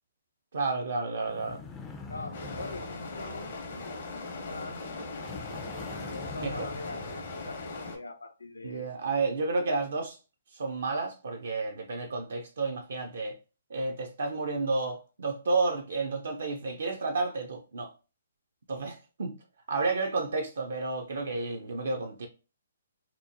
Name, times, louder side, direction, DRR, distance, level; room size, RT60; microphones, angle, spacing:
voice 1, 0.5-1.6 6.4-6.7 8.6-10.2 10.5-13.4 13.7-17.9 18.7-19.3 19.7-22.3, right 3 dB, 65° right, 0.4 m, -31 dB
sound 1, 1.2-4.3 5.2-7.9, left 3 dB, 15° left, 0.3 m, -46 dB
voice 2, 2.1-3.5 4.1-4.8 5.9-8.9, left 2 dB, 85° left, 0.4 m, -42 dB
sound 2, 2.3-8.0, left 3 dB, 55° left, 0.7 m, -39 dB
2.8 x 2.0 x 2.5 m
figure-of-eight pair, 135°, 0 cm